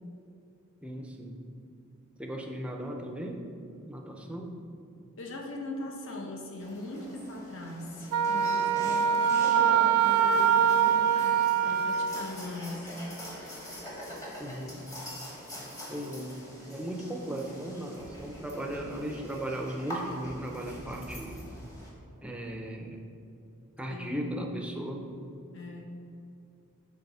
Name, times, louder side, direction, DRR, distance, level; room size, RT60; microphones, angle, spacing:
voice 1, 0.8-1.4 2.2-3.5 3.8-4.6 14.4-14.8 15.9-21.4 22.2-23.0 23.8-25.1, right 1 dB, 5° right, 1 dB, 0.6 m, -37 dB
voice 2, 5.2-12.9 23.9-24.6 25.5-26.0, left 2 dB, 60° left, 1 dB, 1.0 m, -40 dB
sound 1, 6.6-21.9, equal, 15° left, 1.1 m, -44 dB
Wind instrument woodwind instrument, 8.1-12.2, right 8 dB, 90° right, 0.4 m, -24 dB
6.6 x 4.1 x 5.5 m, 2.6 s
head